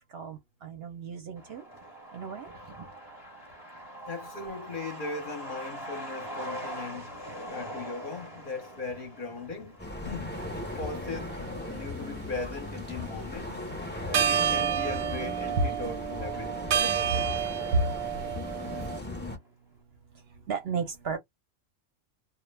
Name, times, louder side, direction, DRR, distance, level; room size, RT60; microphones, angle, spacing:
voice 1, 0.1-1.6 2.1-2.5 15.6-15.7 17.7-17.8 20.1-21.2, right 3 dB, 60° right, 0.7 m, -31 dB
Truck, 1.4-16.5 16.9-17.0 17.2-18.1 18.4-18.5 18.8-19.2, equal, 25° right, 0.7 m, -44 dB
voice 2, 4.1-7.1 7.4-9.8 10.0-10.3 10.6-13.6 14.0-17.2 18.3-18.4 18.8-18.9, left 3 dB, 50° left, 0.7 m, -39 dB
sound 1, 9.8-19.4, left 2 dB, 20° left, 0.3 m, -38 dB
sound 2, 10.4-10.6 11.3-12.2 13.7-13.8 14.1-19.0, right 9 dB, 90° right, 1.0 m, -29 dB
2.2 x 2.1 x 3.2 m
omnidirectional pair, 1.3 m